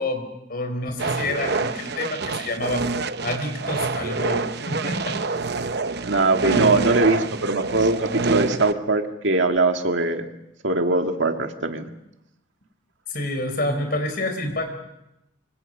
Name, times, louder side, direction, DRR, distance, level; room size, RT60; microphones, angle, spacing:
voice 1, 0.0-2.9 3.2-5.2 6.4-6.7 13.1-14.7, left 1 dB, 50° left, 6 dB, 4.4 m, -28 dB
sound 1, 1.0-8.7, right 4 dB, 55° right, 0.8 m, -27 dB
voice 2, 6.0-10.3 10.6-11.9, right 2 dB, 75° right, 5 dB, 1.9 m, -21 dB
25.5 x 25.0 x 5.5 m, 0.87 s
head